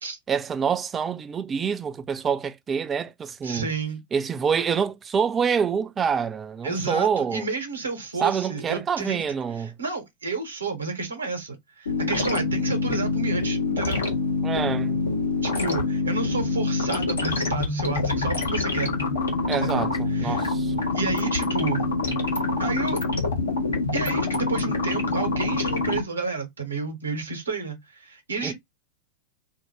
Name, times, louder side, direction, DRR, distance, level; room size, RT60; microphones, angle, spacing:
voice 1, 0.3-3.7 4.1-7.4 8.2-9.8 14.4-15.0 19.5-20.8 28.4-28.5, right 6 dB, 20° right, 0.3 m, -26 dB
voice 2, 3.4-4.0 6.6-9.2 9.6-14.1 15.4-18.9 19.6-20.5 20.9-21.9 22.6-23.0 23.9-28.5, right 4 dB, 75° right, 1.0 m, -31 dB
sound 1, 11.9-26.0, left 3 dB, 70° left, 1.0 m, -25 dB
2.5 x 2.1 x 3.0 m
figure-of-eight pair, 90°, 0 cm